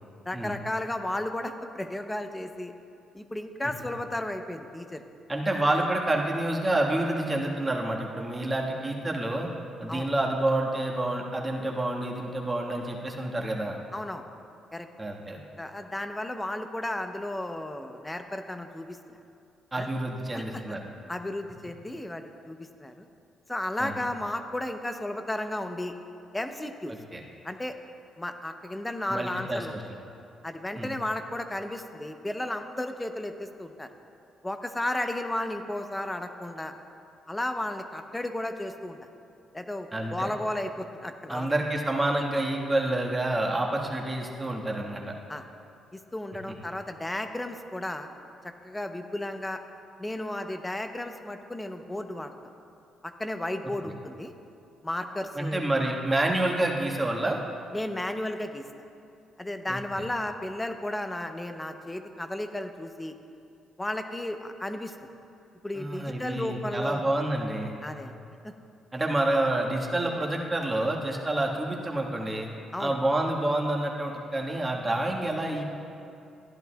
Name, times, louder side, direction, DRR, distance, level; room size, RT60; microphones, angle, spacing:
voice 1, 0.3-2.7 3.1-5.0 5.7-5.9 9.9-10.1 13.9-14.2 14.7-14.9 15.6-19.2 19.7-19.9 20.3-20.8 21.1-23.1 23.5-25.9 26.3-26.9 27.4-27.7 28.2-29.8 30.4-33.9 34.4-36.7 37.3-39.0 39.5-41.5 45.3-45.4 45.9-48.1 48.6-49.6 50.0-52.3 53.0-54.3 54.8-55.6 57.7-58.6 59.4-63.1 63.8-65.0 65.6-67.0 67.8-68.1 68.4-68.5 72.7-73.0, left 1 dB, 10° left, 7 dB, 0.7 m, -34 dB
voice 2, 5.3-9.5 9.8-13.8 15.0-15.4 19.7-20.8 23.8-23.9 27.1-27.2 29.1-29.6 30.7-30.9 39.9-40.3 41.3-45.0 55.3-57.4 59.7-60.1 65.7-67.7 68.9-72.5 72.8-75.6, right 1 dB, 20° right, -1 dB, 1.4 m, -28 dB
14.5 x 10.5 x 2.3 m, 2.6 s
cardioid pair, 90°, 0 cm